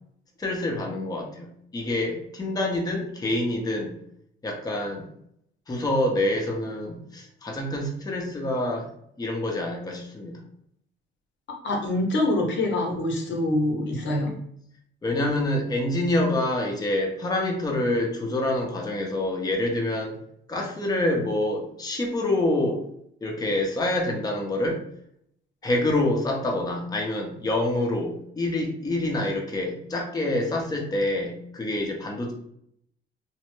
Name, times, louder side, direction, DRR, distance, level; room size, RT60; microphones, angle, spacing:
voice 1, 0.4-3.9 4.4-5.0 5.7-8.9 9.2-10.4 15.0-20.2 20.5-22.8 23.2-24.8 25.6-32.3, left 1 dB, 20° left, 0 dB, 0.6 m, -26 dB
voice 2, 11.6-14.3, left 1 dB, 70° left, 1 dB, 0.8 m, -25 dB
2.6 x 2.0 x 3.1 m, 0.70 s
cardioid pair, 90°, 20 cm